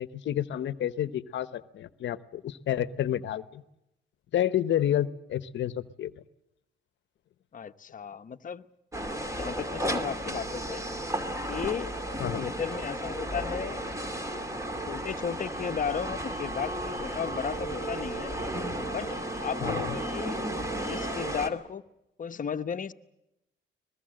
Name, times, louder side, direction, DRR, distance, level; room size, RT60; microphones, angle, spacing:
voice 1, 0.0-3.6 4.3-6.1 12.2-12.5 19.6-20.0, left 11 dB, 70° left, 15 dB, 0.9 m, -30 dB
voice 2, 7.5-8.6 8.9-10.8 11.5-11.9 12.4-13.9 14.3-14.4 14.9-18.3 18.9-20.4 20.7-21.8 22.2-22.9, left 7 dB, 40° left, 10 dB, 1.0 m, -35 dB
sound 1, 8.9-21.5, right 1 dB, 15° right, 2.5 m, -33 dB
23.0 x 21.5 x 7.7 m, 0.88 s
cardioid pair, 90°, 20 cm